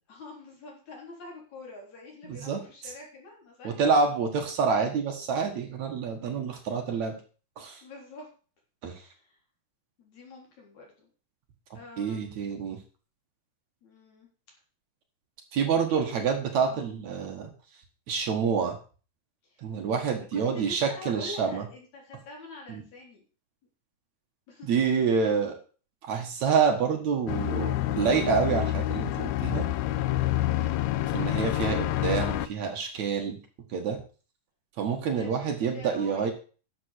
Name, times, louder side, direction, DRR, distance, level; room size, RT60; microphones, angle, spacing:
voice 1, 0.1-3.8 6.7-7.0 7.8-8.3 8.9-9.4 10.0-11.1 11.7-12.5 13.8-14.3 15.6-16.1 16.6-16.9 19.4-19.6 20.3-23.2 24.5-25.0 30.5-30.8 35.1-36.3, left 3 dB, 55° left, -1 dB, 5.0 m, -46 dB
voice 2, 2.2-2.9 3.6-7.1 7.6-7.8 8.8-9.0 12.0-12.8 15.5-17.5 18.1-18.8 19.6-21.6 22.7-22.8 24.7-25.6 26.1-29.7 31.1-33.4 33.7-34.0 34.8-36.3, right 6 dB, 60° right, 4 dB, 2.7 m, -27 dB
sound 1, 27.3-32.5, left 14 dB, 80° left, 1.6 m, -28 dB
11.0 x 7.3 x 6.5 m, 0.38 s
omnidirectional pair, 3.9 m